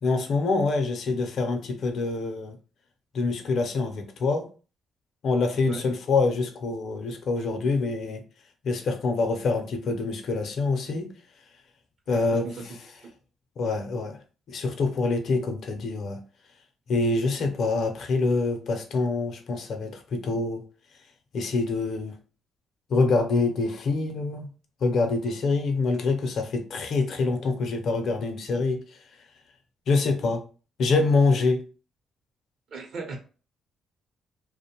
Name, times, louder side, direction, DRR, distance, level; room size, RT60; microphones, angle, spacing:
voice 1, 0.0-2.6 3.1-4.5 5.2-8.2 8.6-11.1 12.1-12.8 13.6-14.2 14.5-16.2 16.9-20.6 21.3-22.2 22.9-24.5 24.8-28.8 29.9-30.4 30.8-31.6, left 3 dB, 65° left, 5 dB, 0.6 m, -25 dB
voice 2, 12.1-12.7 13.0-13.1 32.7-33.2, right 4 dB, 65° right, 3 dB, 0.7 m, -37 dB
2.5 x 2.1 x 2.9 m, 0.36 s
cardioid pair, 90°, 0 cm